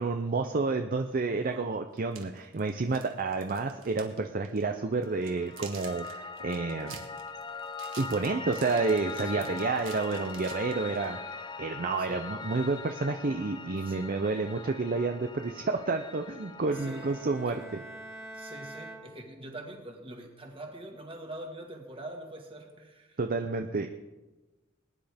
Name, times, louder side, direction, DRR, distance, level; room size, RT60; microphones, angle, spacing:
voice 1, 0.0-7.1 8.0-17.6 23.2-23.9, right 3 dB, 45° right, 6 dB, 0.5 m, -30 dB
sound 1, 1.1-1.2 2.0-4.2 4.4-4.6 5.0-11.1, right 7 dB, 70° right, 1.7 m, -48 dB
voice 2, 1.3-1.7 9.2-9.5 12.0-12.3 13.8-14.1 16.7-17.1 17.5-17.6 18.3-23.2, right 1 dB, 25° right, 2 dB, 1.8 m, -44 dB
Piano, 4.9-17.3, left 4 dB, 20° left, 0.4 m, -41 dB
Bowed string instrument, 16.7-19.8, right 1 dB, 10° right, 1.9 m, -46 dB
21.0 x 10.0 x 3.5 m, 1.2 s
head